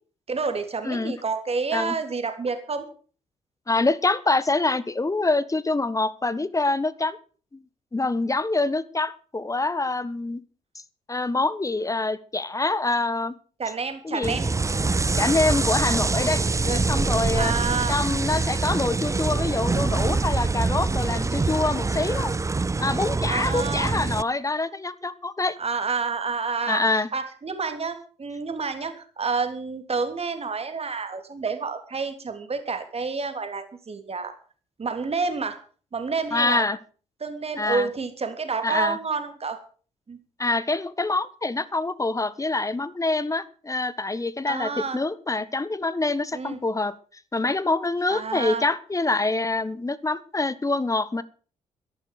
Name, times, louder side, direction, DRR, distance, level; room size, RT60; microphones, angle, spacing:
voice 1, 0.3-2.8 13.6-14.5 16.7-16.8 17.3-18.0 23.2-24.0 25.6-26.8 27.1-34.3 34.8-35.6 35.9-36.6 37.2-39.6 40.1-40.2 44.5-45.0 46.3-46.6 48.1-48.6, right 4 dB, 40° right, 8 dB, 3.3 m, -29 dB
voice 2, 3.7-7.2 7.9-10.4 11.1-13.3 14.0-14.4 15.2-17.5 17.9-22.3 22.8-25.6 26.7-27.1 36.3-36.8 37.6-37.9 38.6-39.0 40.4-46.9 47.3-51.2, left 2 dB, 20° left, 17 dB, 1.4 m, -25 dB
sound 1, 14.2-24.2, right 3 dB, 20° right, 0.6 m, -25 dB
13.5 x 11.5 x 6.7 m, 0.41 s
hypercardioid pair, 45°, 16 cm